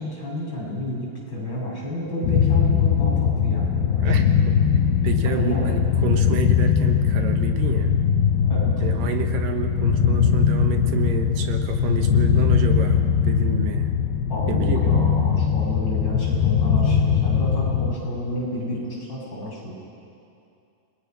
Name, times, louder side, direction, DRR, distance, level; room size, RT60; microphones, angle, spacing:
voice 1, 0.0-4.2 5.2-5.7 8.5-8.7 14.3-19.8, equal, 25° left, -5 dB, 6.9 m, -30 dB
ship interior, 2.2-18.0, left 7 dB, 80° left, 3.0 m, -20 dB
voice 2, 4.0-4.6 5.0-7.9 8.8-13.9 14.5-14.9, right 7 dB, 70° right, 5 dB, 2.8 m, -30 dB
29.5 x 21.5 x 5.7 m, 2.6 s
omnidirectional pair, 4.4 m